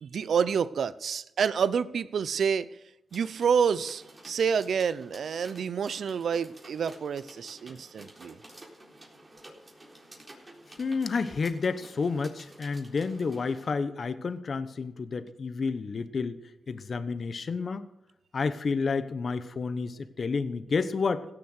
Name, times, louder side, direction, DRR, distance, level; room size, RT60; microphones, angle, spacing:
voice 1, 0.0-2.7 3.1-8.4, right 6 dB, 75° right, 17 dB, 0.6 m, -28 dB
sound 1, 3.1-13.7, right 1 dB, 30° right, 3.9 m, -52 dB
voice 2, 10.8-16.4 16.7-17.8 18.3-21.3, left 4 dB, 60° left, 13 dB, 1.0 m, -30 dB
17.0 x 6.8 x 6.5 m, 0.90 s
cardioid pair, 50°, 0 cm